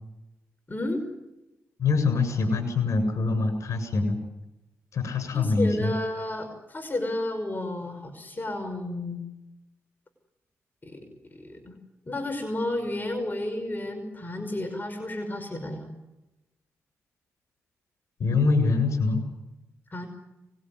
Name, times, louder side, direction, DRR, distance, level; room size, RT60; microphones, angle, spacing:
voice 1, 0.7-1.0 5.3-9.3 10.8-11.8 12.1-15.9 19.9-20.1, left 1 dB, 35° left, 7 dB, 5.7 m, -32 dB
voice 2, 1.8-4.2 4.9-5.9 18.2-19.2, left 4 dB, 65° left, 9 dB, 7.7 m, -24 dB
25.0 x 21.0 x 9.7 m, 0.98 s
supercardioid pair, 55°, 6 cm